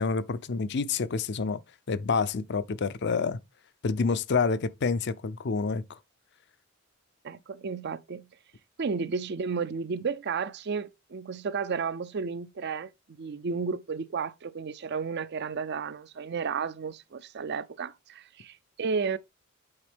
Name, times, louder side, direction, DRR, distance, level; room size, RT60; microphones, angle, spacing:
voice 1, 0.0-1.6 1.9-3.4 3.8-6.0, left 4 dB, 55° left, 0.5 m, -28 dB
voice 2, 7.2-8.3 8.8-19.2, right 5 dB, 55° right, 0.5 m, -33 dB
8.8 x 4.3 x 3.5 m
head